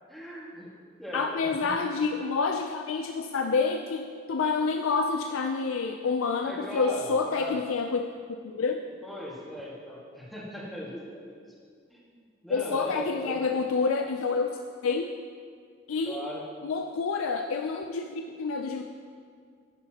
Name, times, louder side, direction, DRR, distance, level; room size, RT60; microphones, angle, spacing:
voice 1, 0.1-0.7 1.0-1.7 6.4-7.6 9.0-11.4 11.9-12.2 12.4-13.4 16.1-16.5, left 1 dB, ahead, -6 dB, 1.8 m, -38 dB
voice 2, 1.1-8.0 8.4-8.8 12.5-14.5 14.8-15.1 15.9-16.2 16.6-18.8, left 4 dB, 85° left, 4 dB, 0.4 m, -28 dB
11.5 x 9.4 x 2.9 m, 2.1 s
head